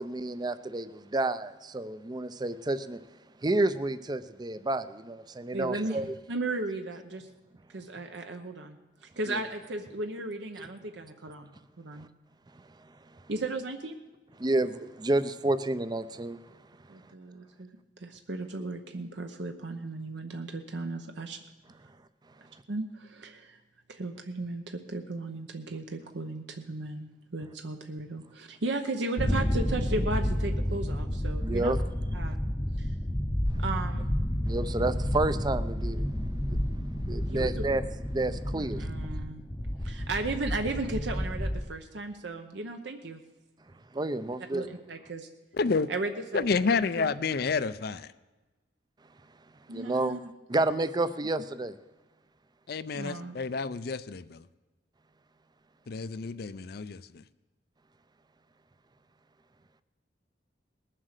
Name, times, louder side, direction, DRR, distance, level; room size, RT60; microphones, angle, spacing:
voice 1, 0.0-3.0 3.4-6.1 9.3-9.4 10.6-10.7 11.9-12.1 12.6-12.7 14.4-16.4 31.4-31.8 33.5-33.6 34.4-36.1 36.5-36.6 37.1-37.8 38.1-38.8 43.9-44.6 49.7-50.2 50.5-51.8, right 2 dB, 25° right, 13 dB, 0.5 m, -30 dB
voice 2, 5.5-7.3 7.7-12.1 13.3-14.0 16.9-17.7 18.0-21.4 22.7-23.6 23.9-31.7 32.1-32.4 32.8-32.9 33.6-34.1 37.3-37.6 38.5-39.4 39.8-43.2 44.5-45.3 45.9-46.5 46.7-47.1 49.7-50.3 52.9-53.4, right 2 dB, 70° right, 5 dB, 0.9 m, -35 dB
sound 1, 29.2-41.6, equal, 20° left, 0.7 m, -30 dB
voice 3, 45.6-45.9 46.3-48.1 52.7-54.4 55.9-57.2, left 4 dB, 55° left, 14 dB, 0.5 m, -29 dB
20.0 x 7.5 x 6.6 m, 1.1 s
head